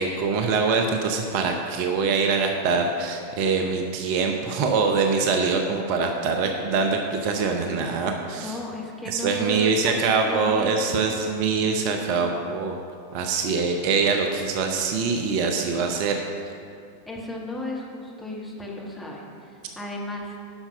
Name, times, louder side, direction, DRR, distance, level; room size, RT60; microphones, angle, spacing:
voice 1, 0.0-8.6 9.1-12.8 13.1-16.2, right 4 dB, 45° right, 4 dB, 0.7 m, -24 dB
voice 2, 8.4-11.0 17.0-20.4, left 1 dB, 5° left, -3 dB, 1.6 m, -35 dB
9.8 x 5.9 x 5.7 m, 2.4 s
figure-of-eight pair, 90°, 0 cm